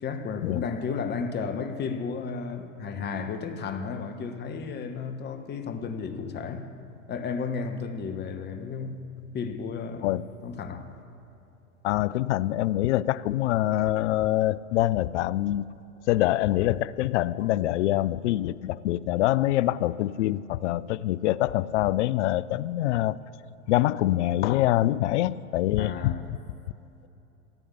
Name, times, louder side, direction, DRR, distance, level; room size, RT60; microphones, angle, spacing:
voice 1, 0.0-6.7 7.1-10.9 25.8-26.2, left 5 dB, 25° left, 1.2 m, -33 dB
voice 2, 11.8-15.7 16.1-23.2 23.7-26.2, left 15 dB, 60° left, 0.5 m, -25 dB
15.0 x 9.9 x 8.3 m
hypercardioid pair, 105°, 41 cm